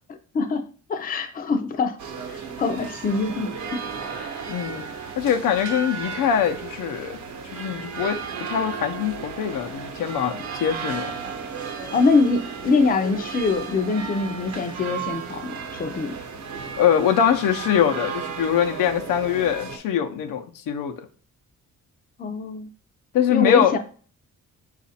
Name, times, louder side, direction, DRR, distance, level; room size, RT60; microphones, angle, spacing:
voice 1, 0.1-2.0 2.3-3.8 4.1-4.3 11.9-16.1 22.2-22.7 23.3-23.8, left 4 dB, 30° left, 0.5 m, -24 dB
sound 1, 2.0-19.8, right 5 dB, 60° right, 0.8 m, -34 dB
voice 2, 4.5-4.9 5.2-7.2 7.5-8.2 8.5-11.1 16.8-20.9 23.1-23.7, left 9 dB, 85° left, 0.7 m, -23 dB
4.9 x 2.5 x 4.1 m
cardioid pair, 130°, 32 cm